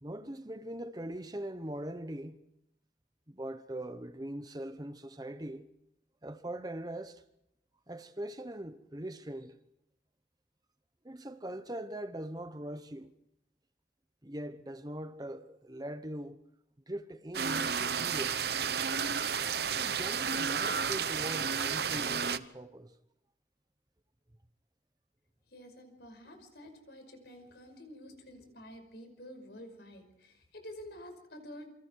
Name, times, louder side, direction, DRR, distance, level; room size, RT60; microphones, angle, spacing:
voice 1, 0.0-2.4 3.3-5.6 6.2-7.2 7.9-9.6 11.0-13.1 14.2-16.4 16.9-18.4 19.7-23.0, right 1 dB, 20° right, 0.9 m, -41 dB
sound 1, 17.3-22.4, right 6 dB, 55° right, 0.9 m, -32 dB
voice 2, 25.5-31.7, equal, 60° left, 5.5 m, -49 dB
28.0 x 25.0 x 4.7 m
head